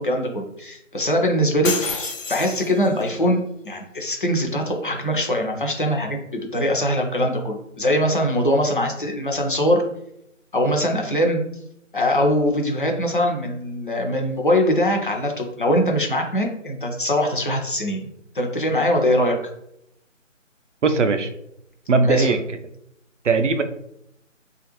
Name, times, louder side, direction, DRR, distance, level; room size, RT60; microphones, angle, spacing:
voice 1, 0.0-3.4 3.6-9.8 10.5-11.4 11.9-18.1 18.3-19.4 22.0-22.4, equal, 40° left, 2 dB, 0.5 m, -22 dB
sound 1, 1.6-3.1, left 4 dB, 75° left, 0.8 m, -29 dB
voice 2, 20.8-21.3 21.9-22.4 23.2-23.6, right 4 dB, 65° right, 8 dB, 0.5 m, -19 dB
3.1 x 2.4 x 2.9 m, 0.77 s
figure-of-eight pair, 170°, 39 cm